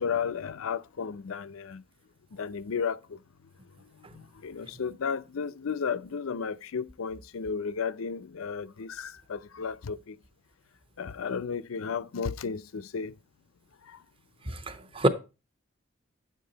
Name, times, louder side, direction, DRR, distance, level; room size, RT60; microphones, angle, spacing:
voice 1, 0.0-1.8 2.3-3.2 3.9-10.2 11.0-13.1 13.8-14.0, left 6 dB, 90° left, 0.5 m, -33 dB
voice 2, 14.5-15.1, right 1 dB, 25° right, 0.8 m, -26 dB
9.2 x 7.5 x 3.9 m
head